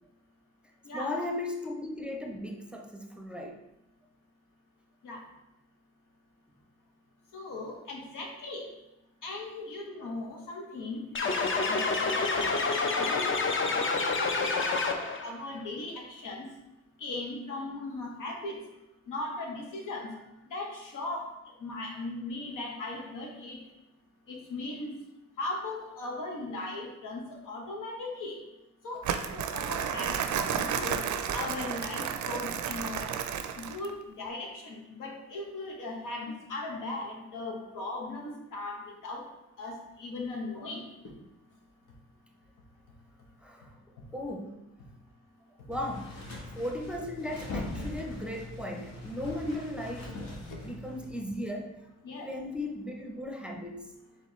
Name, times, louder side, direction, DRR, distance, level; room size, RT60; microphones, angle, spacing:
voice 1, 0.9-3.6 12.3-12.5 43.4-43.7 44.1-44.6 45.7-46.1 46.5-50.1 50.6-51.7 52.2-53.9, left 1 dB, 5° right, 1 dB, 0.6 m, -36 dB
voice 2, 7.3-8.7 9.2-11.0 11.3-12.5 12.9-16.4 17.0-18.6 19.1-20.1 20.5-21.3 21.6-23.6 24.3-24.9 25.4-28.4 28.8-31.0 31.3-33.1 33.6-39.2 39.6-40.8 50.5-50.6 52.0-52.3, left 2 dB, 85° left, 0 dB, 1.0 m, -38 dB
sound 1, 11.1-15.3, left 4 dB, 40° left, 0.6 m, -28 dB
Crumpling crinkling, 29.0-33.9, right 8 dB, 70° right, 0.4 m, -32 dB
sound 2, 45.7-51.2, left 2 dB, 60° left, 1.3 m, -41 dB
4.1 x 3.8 x 3.1 m, 0.92 s
cardioid pair, 65°, 31 cm